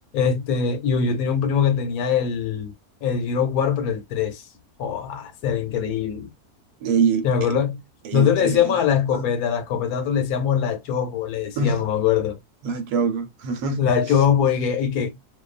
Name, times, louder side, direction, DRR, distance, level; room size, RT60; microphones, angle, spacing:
voice 1, 0.1-2.7 3.0-4.5 4.8-6.3 7.2-7.8 8.1-12.4 13.8-15.1, left 7 dB, 70° left, 1.1 m, -22 dB
voice 2, 6.8-7.5 8.0-8.7 9.1-9.3 11.6-11.8 12.6-13.9, right 5 dB, 75° right, 1.1 m, -24 dB
2.6 x 2.3 x 2.4 m
omnidirectional pair, 1.7 m